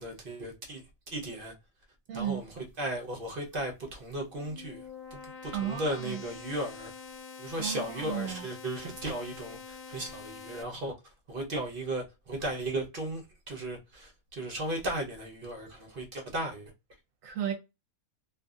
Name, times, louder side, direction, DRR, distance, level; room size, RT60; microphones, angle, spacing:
voice 1, 0.0-1.5 2.1-6.9 7.4-10.9 11.3-16.7, right 1 dB, 45° right, 0.9 m, -36 dB
voice 2, 2.1-2.4 5.5-6.2 7.6-8.5 17.2-17.5, right 10 dB, 75° right, 1.0 m, -34 dB
sound 1, 4.1-10.6, left 5 dB, 80° left, 1.1 m, -46 dB
2.6 x 2.6 x 2.3 m
omnidirectional pair, 1.5 m